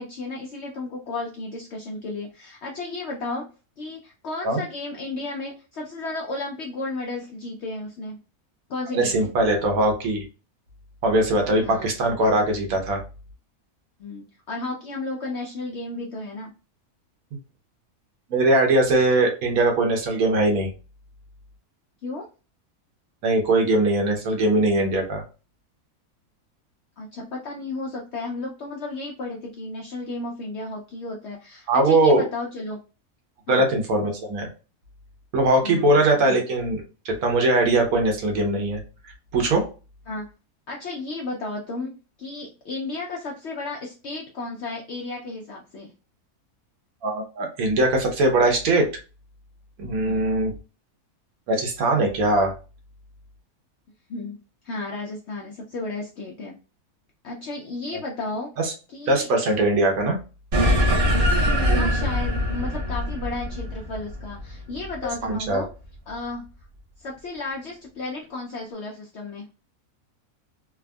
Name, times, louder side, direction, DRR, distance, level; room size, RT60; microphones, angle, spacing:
voice 1, 0.0-3.5 3.8-8.2 8.7-9.3 11.6-11.9 14.0-16.5 22.0-22.3 27.0-32.8 33.5-33.7 35.6-36.4 40.1-40.3 40.7-45.9 50.1-50.2 54.1-54.4 54.6-56.5 57.2-58.5 58.9-59.3 61.3-65.7 66.1-66.4 67.0-69.5, left 2 dB, 70° left, 0 dB, 0.6 m, -33 dB
voice 2, 8.9-10.2 11.0-13.0 18.3-20.7 23.2-25.2 31.7-32.2 33.5-34.5 35.3-38.8 39.3-39.7 47.0-48.9 49.8-50.5 51.5-52.5 58.6-58.7 59.1-60.2 65.2-65.6, right 2 dB, 70° right, 2 dB, 1.2 m, -21 dB
sound 1, 60.5-65.3, equal, 50° right, 1.0 m, -22 dB
3.4 x 2.0 x 2.2 m, 0.33 s
omnidirectional pair, 1.6 m